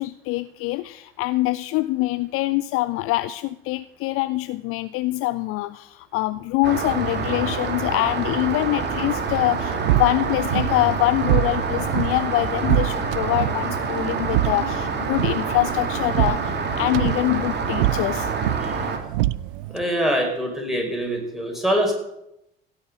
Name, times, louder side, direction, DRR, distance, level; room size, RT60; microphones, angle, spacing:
voice 1, 0.0-18.3, left 18 dB, 45° left, 15 dB, 0.5 m, -24 dB
Rain, 6.6-19.0, right 4 dB, 35° right, 2.4 m, -27 dB
sound 1, 9.3-19.8, right 16 dB, 60° right, 0.5 m, -26 dB
voice 2, 19.7-21.9, equal, ahead, 1 dB, 5.4 m, -24 dB
16.5 x 7.2 x 8.0 m, 0.84 s
figure-of-eight pair, 60°, 31 cm